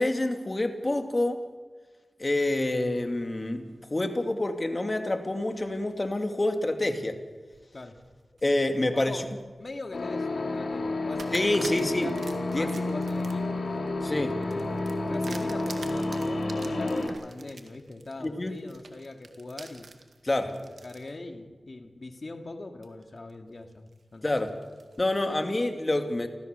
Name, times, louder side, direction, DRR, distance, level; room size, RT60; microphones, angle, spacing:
voice 1, 0.0-1.4 2.2-7.2 8.4-9.2 11.3-12.1 12.5-12.7 14.0-14.3 18.2-18.6 20.2-20.5 24.2-24.5 25.0-26.3, left 1 dB, 35° left, 6 dB, 2.6 m, -27 dB
sound 1, 7.3-8.6 9.1-10.0 10.5-10.6 11.2-21.1 21.7-21.8 22.8-23.3 23.7-25.4, right 4 dB, 90° right, 1.9 m, -48 dB
voice 2, 8.9-9.3 9.6-12.2 12.5-13.6 14.4-19.9 20.4-24.5, left 2 dB, 55° left, 5 dB, 2.3 m, -42 dB
sound 2, 9.9-17.1, left 2 dB, 80° left, 3.1 m, -30 dB
29.5 x 14.0 x 6.9 m, 1.4 s
cardioid pair, 45°, 0 cm